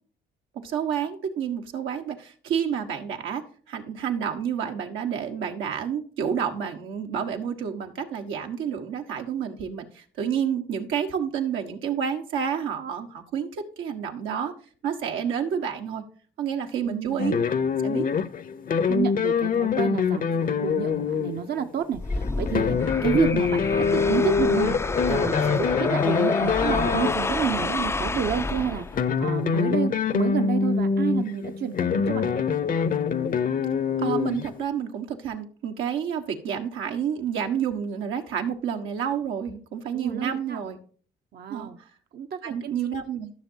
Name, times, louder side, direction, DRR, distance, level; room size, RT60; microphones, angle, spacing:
voice 1, 0.5-14.5 14.8-16.0 16.4-17.4 17.8-18.1 34.0-40.8 41.5-41.7 42.4-43.3, right 8 dB, 85° right, 4 dB, 1.5 m, -29 dB
voice 2, 16.8-17.2 18.9-32.4 39.9-40.6 41.3-41.8 42.1-42.7, right 8 dB, 55° right, 7 dB, 0.7 m, -30 dB
sound 1, 17.2-27.8 28.8-34.6, left 6 dB, 45° left, 0.7 m, -25 dB
sound 2, 21.9-29.2, left 3 dB, 15° left, 0.4 m, -29 dB
13.5 x 6.4 x 2.8 m, 0.43 s
cardioid pair, 90°, 20 cm